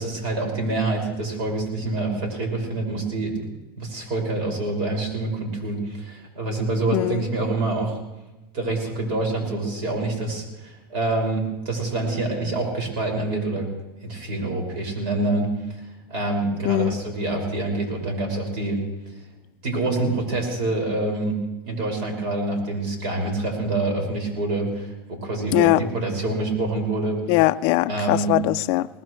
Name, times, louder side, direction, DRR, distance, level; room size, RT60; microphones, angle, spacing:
voice 1, 0.0-3.3 3.8-8.0 8.5-13.7 14.1-15.8 16.1-18.8 19.1-19.2 19.6-21.4 21.6-27.2 27.9-28.3, right 2 dB, 55° right, 5.7 m, -26 dB
voice 2, 6.9-7.2 16.6-17.0 25.5-25.8 27.3-28.9, left 19 dB, 50° left, 0.4 m, -20 dB
21.0 x 19.5 x 3.2 m
supercardioid pair, 140°, 12 cm